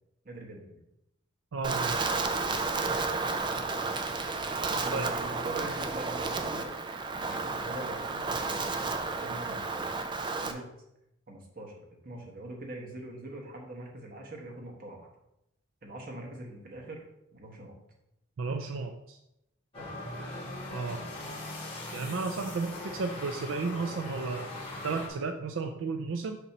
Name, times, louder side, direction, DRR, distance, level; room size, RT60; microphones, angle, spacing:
voice 1, 0.2-0.8 4.7-6.7 7.1-8.7 9.2-9.9 10.4-10.7 11.3-15.1 15.8-17.0 17.3-17.8 19.7-19.9, right 1 dB, 50° right, 0 dB, 1.3 m, -43 dB
voice 2, 1.5-2.0 4.9-5.1 18.4-19.2 20.7-21.0 21.9-24.5 24.8-26.4, right 4 dB, 80° right, 5 dB, 0.4 m, -33 dB
Wind, 1.6-10.5, right 3 dB, 25° right, 0.4 m, -32 dB
sound 1, 19.7-25.1, left 2 dB, 30° left, 2.0 m, -40 dB
6.8 x 3.0 x 5.8 m, 0.86 s
head